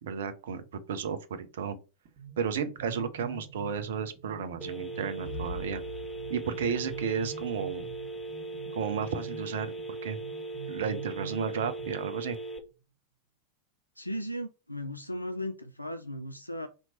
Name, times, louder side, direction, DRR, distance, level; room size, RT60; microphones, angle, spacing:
voice 1, 0.0-1.8 2.4-5.8 6.3-7.8 8.7-9.7 10.0-10.2 10.7-12.4, right 6 dB, 60° right, 0.6 m, -33 dB
sound 1, 2.0-12.5, right 7 dB, 45° right, 1.4 m, -46 dB
Telephone, 4.6-12.6, right 3 dB, 5° left, 0.7 m, -39 dB
sound 2, 5.2-9.1, left 1 dB, 60° left, 0.8 m, -45 dB
voice 2, 14.0-16.7, equal, 90° left, 0.3 m, -36 dB
2.9 x 2.6 x 4.3 m
figure-of-eight pair, 90°, 0 cm